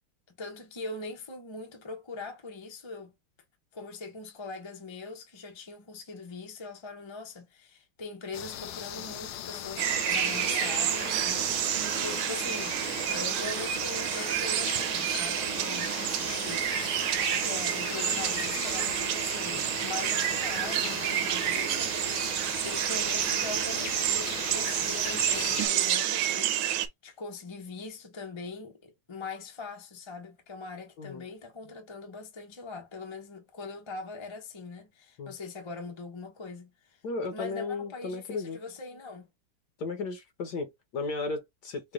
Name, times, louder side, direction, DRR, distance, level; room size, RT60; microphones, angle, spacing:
voice 1, 0.4-3.1 3.7-12.8 13.0-22.2 22.6-37.0 37.3-39.3, left 3 dB, 25° left, 0.6 m, -42 dB
sound 1, 8.3-25.7, left 11 dB, 85° left, 1.5 m, -38 dB
sound 2, 9.8-26.9, right 12 dB, 75° right, 1.5 m, -29 dB
voice 2, 37.0-38.6 39.8-41.9, left 3 dB, 60° left, 1.4 m, -35 dB
4.8 x 2.4 x 3.6 m
omnidirectional pair, 2.4 m